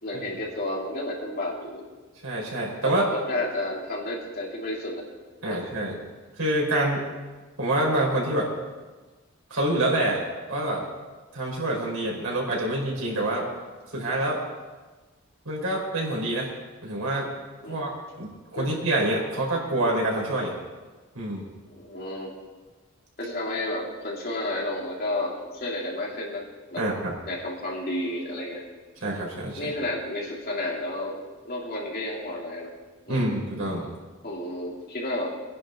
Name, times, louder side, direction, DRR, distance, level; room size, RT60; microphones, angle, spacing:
voice 1, 0.0-1.8 2.8-5.0 5.4-5.6 17.6-17.8 18.5-18.7 21.7-22.3 23.2-26.4 26.7-26.8 27.3-28.6 29.6-31.2 31.4-32.7 33.1-33.3 34.2-35.3, left 1 dB, 45° left, -4 dB, 3.3 m, -31 dB
voice 2, 2.2-3.0 5.4-6.0 6.4-7.0 7.6-8.5 9.5-10.2 10.5-10.8 11.3-13.5 13.9-14.4 15.4-16.5 16.8-17.3 17.7-17.9 18.2-20.5 21.1-21.5 26.8-27.2 29.0-29.7 33.1-33.9, right 1 dB, 90° right, -3 dB, 4.6 m, -26 dB
21.5 x 10.5 x 4.0 m, 1.3 s
head